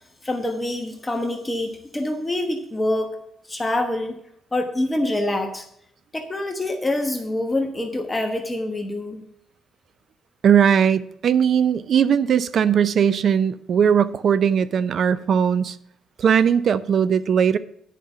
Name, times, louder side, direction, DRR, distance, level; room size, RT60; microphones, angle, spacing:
voice 1, 0.2-3.1 3.5-4.2 4.5-5.6 6.1-9.2, left 1 dB, 20° left, 4 dB, 1.2 m, -25 dB
voice 2, 10.4-15.7 16.2-17.6, right 8 dB, 60° right, 16 dB, 0.5 m, -19 dB
9.5 x 5.3 x 6.9 m, 0.74 s
cardioid pair, 90°, 0 cm